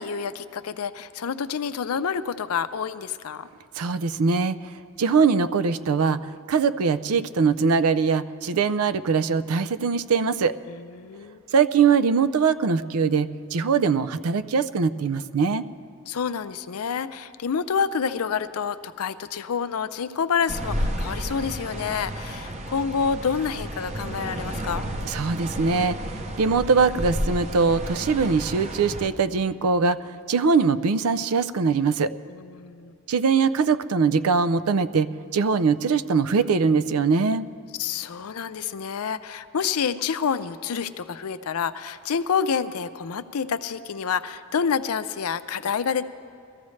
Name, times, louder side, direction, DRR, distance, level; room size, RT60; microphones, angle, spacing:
voice 1, 0.0-3.5 10.7-11.4 16.1-24.8 32.3-32.9 37.8-46.1, left 6 dB, 90° left, 13 dB, 0.5 m, -28 dB
voice 2, 3.8-4.6 5.0-6.2 6.5-10.5 11.5-15.6 25.1-26.0 26.4-30.0 30.3-32.1 33.1-37.4, right 5 dB, 90° right, 14 dB, 0.5 m, -22 dB
sound 1, 20.5-29.1, equal, 30° right, 0.7 m, -32 dB
22.5 x 14.5 x 3.2 m, 2.4 s
head